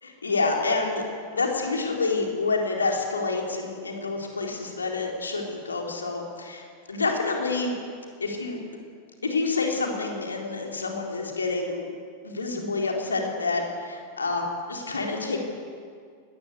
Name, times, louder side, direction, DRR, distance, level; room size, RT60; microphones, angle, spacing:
voice 1, 0.0-1.0 1.3-7.7 8.2-8.6 9.2-11.9 12.2-15.4, left 3 dB, 75° left, 1 dB, 3.9 m, -28 dB
21.5 x 19.5 x 8.3 m, 2.1 s
figure-of-eight pair, 90°, 0 cm